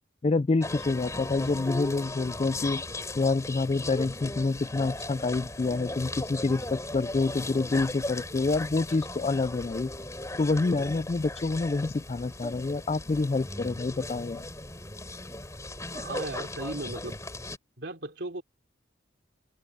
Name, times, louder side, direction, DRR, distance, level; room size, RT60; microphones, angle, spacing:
voice 1, 0.2-2.8 3.1-9.9 10.4-14.4, left 3 dB, 30° left, 0.3 m, -27 dB
sound 1, 0.6-17.6, left 2 dB, 15° left, 3.7 m, -37 dB
voice 2, 15.9-17.2 17.8-18.4, right 2 dB, 65° right, 3.0 m, -36 dB
head